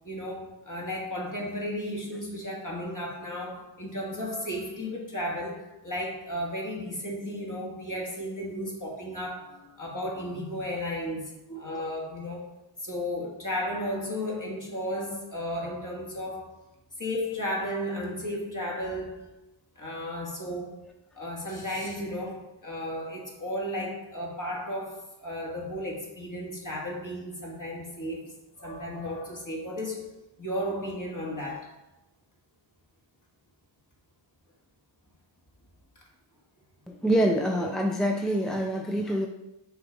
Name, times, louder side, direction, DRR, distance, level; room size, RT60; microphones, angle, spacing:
voice 1, 0.0-12.4 12.8-16.6 17.0-19.4 19.8-20.9 21.2-30.1 30.4-31.7 37.5-37.7, equal, 40° left, -3 dB, 1.9 m, -34 dB
voice 2, 36.9-39.3, right 1 dB, ahead, 1 dB, 0.5 m, -26 dB
6.0 x 3.3 x 5.1 m, 0.94 s
wide cardioid pair, 45°, 48 cm